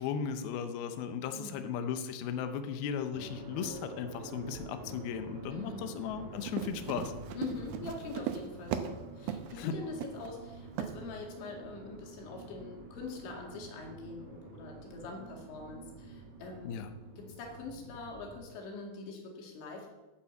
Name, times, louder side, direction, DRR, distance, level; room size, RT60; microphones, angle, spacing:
voice 1, 0.0-7.1 9.6-9.7 16.7-16.9, left 7 dB, 75° left, 7 dB, 2.5 m, -36 dB
voice 2, 1.3-1.7 5.5-5.9 7.4-16.8 17.2-19.9, left 4 dB, 90° left, 0 dB, 4.6 m, -44 dB
sound 1, 3.1-18.4, right 3 dB, 50° right, 2.6 m, -48 dB
Run, 6.4-9.0 9.3-9.5 10.0-10.3 10.8-10.9, right 9 dB, 75° right, 2.2 m, -37 dB
9.3 x 9.3 x 8.0 m, 1.1 s
omnidirectional pair, 5.1 m